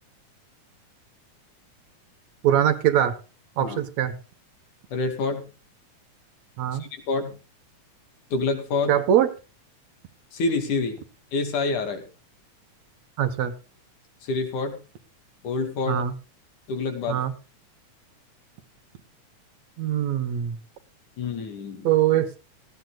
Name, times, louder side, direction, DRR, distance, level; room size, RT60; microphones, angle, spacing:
voice 1, 2.4-3.2 3.6-4.1 6.6-6.8 8.9-9.3 13.2-13.5 15.9-16.1 17.1-17.3 19.8-20.6 21.8-22.4, right 11 dB, 70° right, 10 dB, 2.3 m, -22 dB
voice 2, 4.9-5.4 6.8-7.4 8.3-8.9 10.3-11.0 11.3-12.0 14.2-14.8 15.4-16.0 16.7-17.2 21.2-21.9, left 3 dB, 85° left, 6 dB, 4.0 m, -27 dB
18.5 x 15.0 x 2.3 m, 0.33 s
omnidirectional pair, 3.4 m